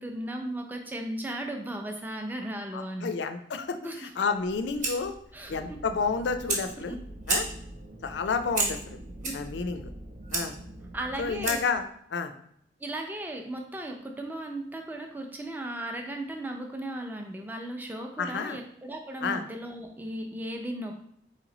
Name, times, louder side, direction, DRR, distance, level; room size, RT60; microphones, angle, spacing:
voice 1, 0.0-3.1 3.8-4.1 5.3-5.6 9.2-9.3 10.9-11.6 12.8-21.0, right 1 dB, 10° right, 3 dB, 0.4 m, -36 dB
voice 2, 2.7-3.8 4.2-5.1 5.5-7.0 7.3-7.5 8.0-9.0 9.3-9.8 10.3-10.6 11.2-11.8 12.1-12.3 18.2-18.6 19.2-19.4, left 5 dB, 75° left, 8 dB, 0.4 m, -30 dB
Fire, 4.3-11.8, right 3 dB, 45° right, 1.0 m, -35 dB
sound 1, 5.5-11.6, right 1 dB, 60° right, 0.6 m, -45 dB
4.2 x 3.0 x 3.8 m, 0.66 s
head